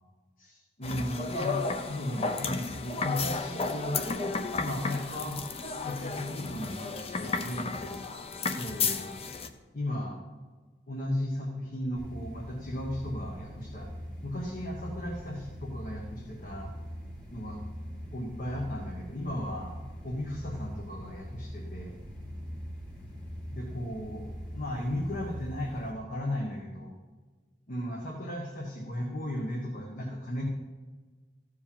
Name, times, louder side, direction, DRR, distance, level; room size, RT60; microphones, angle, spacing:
voice 1, 0.4-4.0 4.6-5.4 5.8-7.9 8.6-9.2 9.7-10.2 10.9-13.9 14.2-16.7 17.3-17.6 18.1-19.7 20.0-21.9 23.5-24.3 24.5-26.9 27.7-30.4, left 1 dB, 50° left, -1 dB, 1.4 m, -35 dB
sound 1, 0.8-9.5, left 4 dB, 35° left, 0.7 m, -33 dB
sound 2, 12.0-25.9, equal, 5° left, 2.4 m, -42 dB
14.5 x 5.0 x 7.2 m, 1.4 s
head